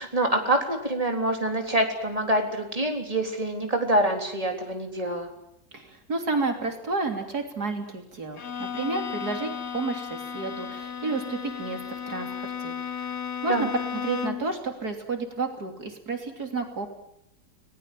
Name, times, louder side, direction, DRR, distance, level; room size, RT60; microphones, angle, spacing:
voice 1, 0.0-5.3 13.5-13.7, right 1 dB, 20° right, 3 dB, 3.8 m, -26 dB
voice 2, 5.7-11.8 12.1-13.1 13.4-13.7 14.0-16.9, right 3 dB, 60° right, 4 dB, 3.7 m, -31 dB
Bowed string instrument, 8.4-14.6, left 7 dB, 45° left, 1.2 m, -34 dB
30.0 x 19.5 x 7.7 m, 0.76 s
omnidirectional pair, 1.9 m